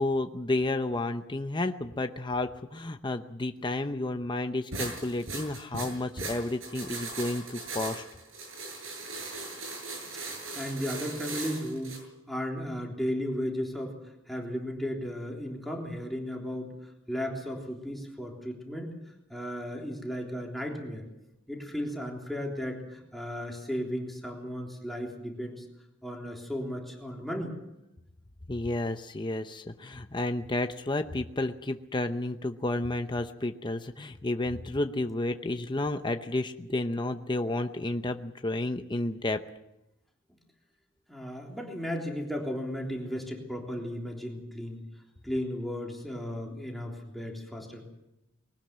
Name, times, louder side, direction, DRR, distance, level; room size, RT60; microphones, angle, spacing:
voice 1, 0.0-8.0 28.5-39.4, left 2 dB, 25° left, 7 dB, 0.8 m, -31 dB
sound 1, 4.7-12.0, right 3 dB, 80° right, 7.5 m, -39 dB
voice 2, 10.6-12.0 12.3-14.0 14.3-16.7 17.1-18.9 19.3-21.1 21.5-25.7 26.0-27.5 41.1-44.8 45.2-47.9, equal, ahead, -1 dB, 3.5 m, -35 dB
21.0 x 18.5 x 7.5 m, 0.92 s
head